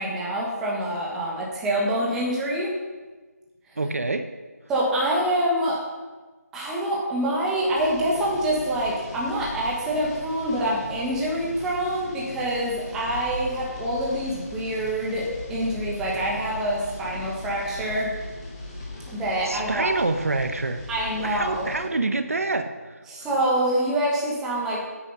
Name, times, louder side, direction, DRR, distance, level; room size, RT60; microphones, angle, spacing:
voice 1, 0.0-2.7 4.7-5.8 6.5-18.1 19.1-19.9 20.9-21.7 23.1-24.8, right 1 dB, 5° right, -4 dB, 1.2 m, -26 dB
voice 2, 3.8-4.3 19.5-20.8 21.2-23.0, right 3 dB, 60° right, 9 dB, 0.8 m, -26 dB
sound 1, 7.8-21.9, left 2 dB, 20° left, 2.3 m, -39 dB
9.2 x 9.0 x 5.4 m, 1.3 s
figure-of-eight pair, 165°, 9 cm